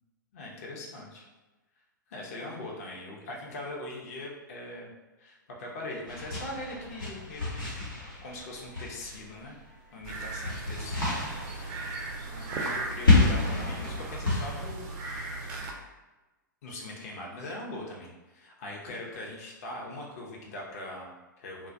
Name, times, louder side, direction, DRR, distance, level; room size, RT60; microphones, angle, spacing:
voice 1, 0.3-1.2 2.1-4.9 5.2-7.9 8.2-9.6 9.9-11.2 11.6-11.7 12.3-14.9 16.6-21.7, left 1 dB, 45° left, -2 dB, 0.6 m, -41 dB
sound 1, 6.1-9.6 9.9-14.7, left 2 dB, 85° left, 0.9 m, -29 dB
sound 2, 10.0-15.7, right 3 dB, 30° right, 0.4 m, -37 dB
2.2 x 2.1 x 2.6 m, 1.1 s
figure-of-eight pair, 110°, 11 cm